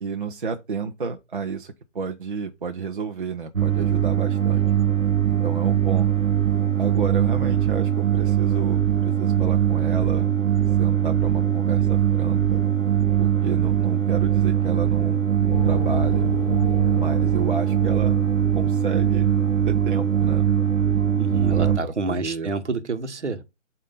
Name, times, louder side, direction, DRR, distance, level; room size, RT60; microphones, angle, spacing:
voice 1, 0.0-4.7 5.3-6.1 6.8-8.8 9.2-10.3 10.8-12.6 13.2-16.3 16.9-18.2 18.5-19.4 19.7-20.5 21.5-22.5, right 5 dB, 40° right, 0.7 m, -31 dB
sound 1, 3.5-21.8, right 9 dB, 80° right, 1.1 m, -21 dB
sound 2, 15.5-18.9, left 1 dB, 25° left, 0.5 m, -32 dB
voice 2, 21.2-23.4, right 3 dB, 60° right, 1.2 m, -28 dB
8.2 x 2.7 x 5.4 m
figure-of-eight pair, 145°, 39 cm